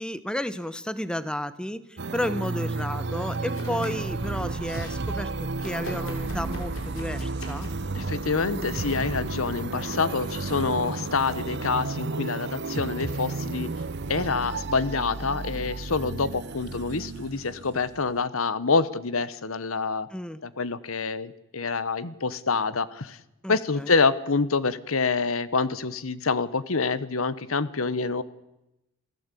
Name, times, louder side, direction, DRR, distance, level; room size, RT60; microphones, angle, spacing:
voice 1, 0.0-5.3 5.6-7.7 20.1-20.4 23.4-23.9, left 1 dB, 5° left, 14 dB, 1.0 m, -32 dB
sound 1, 2.0-18.2, right 3 dB, 55° right, 0.8 m, -32 dB
Domestic sounds home sounds, 3.4-4.1 4.4-5.0 5.6-7.9 8.8-9.0, left 2 dB, 70° left, 5.4 m, -43 dB
voice 2, 7.9-13.7 14.1-20.1 20.4-23.2 23.5-28.2, left 4 dB, 85° left, 16 dB, 1.1 m, -27 dB
28.5 x 16.5 x 8.4 m, 0.92 s
head